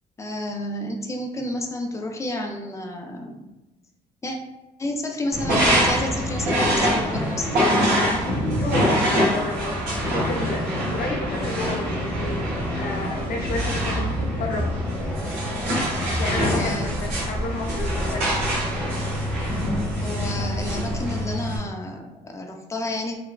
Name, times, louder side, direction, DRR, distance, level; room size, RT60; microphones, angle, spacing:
voice 1, 0.2-3.4 4.2-4.4 4.8-7.5 16.3-16.9 20.0-23.2, left 1 dB, 15° left, 3 dB, 0.4 m, -30 dB
sound 1, 5.3-21.6, equal, 80° right, 1.2 m, -24 dB
voice 2, 8.5-14.7 16.2-16.9 17.2-18.3, left 3 dB, 55° left, -1 dB, 0.7 m, -31 dB
3.2 x 2.1 x 2.3 m, 1.0 s
cardioid pair, 110°, 17 cm